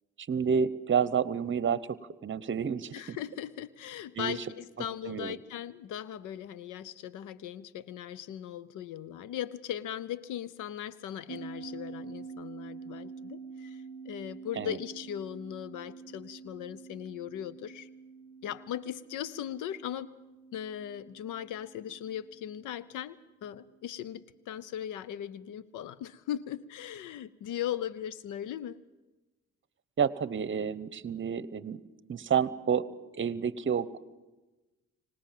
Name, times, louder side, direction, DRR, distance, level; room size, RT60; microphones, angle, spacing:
voice 1, 0.3-2.0 2.2-3.2 4.2-4.4 4.8-5.3 14.6-14.8 30.0-31.8 32.1-32.8 33.1-34.0, right 7 dB, 40° right, 17 dB, 1.0 m, -29 dB
voice 2, 2.9-17.9 18.4-20.1 20.5-28.8, left 10 dB, 85° left, 19 dB, 0.8 m, -39 dB
sound 1, 11.3-24.0, right 5 dB, 50° left, 2.5 m, -47 dB
25.0 x 19.0 x 7.5 m, 1.1 s
cardioid pair, 90°, 30 cm